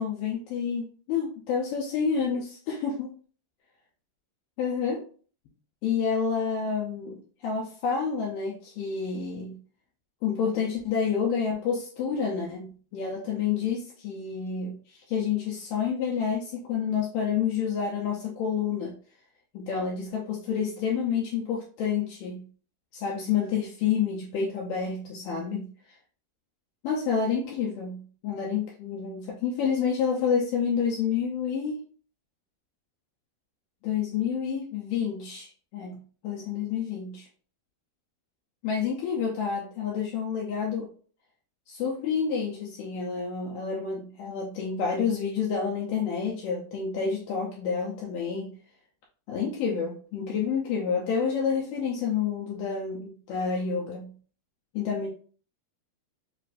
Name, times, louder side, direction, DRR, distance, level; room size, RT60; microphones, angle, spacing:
voice 1, 0.0-3.1 4.6-5.0 5.8-9.6 10.2-19.0 19.5-22.5 22.9-25.7 26.8-31.8 33.8-37.3 38.6-40.9 41.7-48.6 49.3-54.1 54.7-55.1, left 6 dB, 80° left, -2 dB, 2.0 m, -29 dB
6.5 x 2.5 x 2.4 m, 0.42 s
omnidirectional pair, 4.5 m